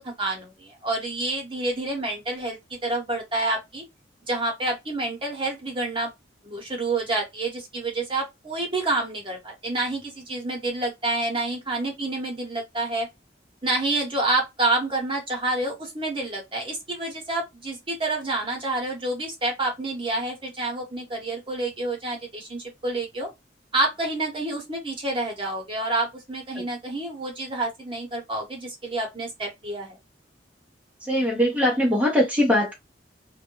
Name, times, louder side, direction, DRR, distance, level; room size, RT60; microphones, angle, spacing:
voice 1, 0.0-3.8 4.3-6.1 6.4-13.1 13.6-23.3 23.7-30.0, right 2 dB, 30° right, 0.9 m, -28 dB
voice 2, 31.0-32.8, left 1 dB, 10° right, 0.7 m, -21 dB
2.2 x 2.1 x 3.0 m
head